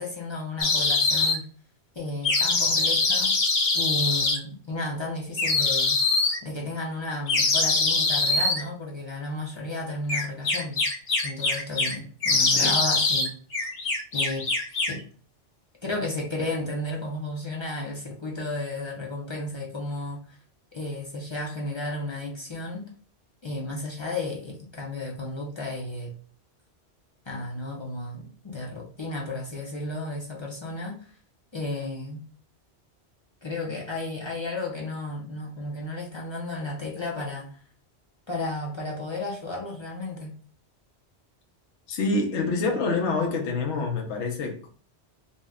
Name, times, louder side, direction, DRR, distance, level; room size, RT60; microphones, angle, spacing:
voice 1, 0.0-1.5 2.0-3.4 3.7-6.0 6.4-10.9 11.2-13.3 14.1-14.5 14.9-15.1 15.8-20.4 20.7-22.9 23.4-26.1 27.3-31.1 31.5-32.2 33.4-37.6 38.3-40.4, left 2 dB, 35° left, 0.4 m, -33 dB
sound 1, 0.6-1.4 2.2-4.4 5.4-6.4 7.3-8.6 10.1-11.9 12.2-13.3 13.5-15.0, left 3 dB, 65° left, 1.0 m, -23 dB
voice 2, 41.9-44.7, left 3 dB, 85° left, 0.9 m, -27 dB
2.7 x 2.1 x 3.5 m
omnidirectional pair, 1.1 m